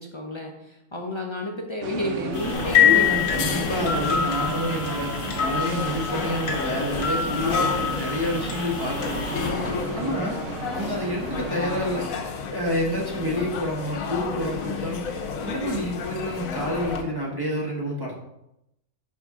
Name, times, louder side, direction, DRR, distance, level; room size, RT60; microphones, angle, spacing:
voice 1, 0.0-3.2 3.5-3.7 9.6-10.3 15.4-15.5, left 1 dB, 50° left, 0 dB, 0.3 m, -32 dB
sound 1, 1.8-12.1, right 5 dB, 65° right, 0.9 m, -35 dB
sound 2, 2.3-9.5, left 8 dB, 65° left, 1.5 m, -25 dB
sound 3, 2.5-17.0, left 5 dB, 80° left, 1.1 m, -32 dB
voice 2, 2.8-5.1 5.4-9.3 9.9-10.4 10.7-12.0 12.5-15.0 15.4-18.1, left 1 dB, 20° right, -3 dB, 0.9 m, -28 dB
5.9 x 4.4 x 3.6 m, 0.85 s
omnidirectional pair, 1.5 m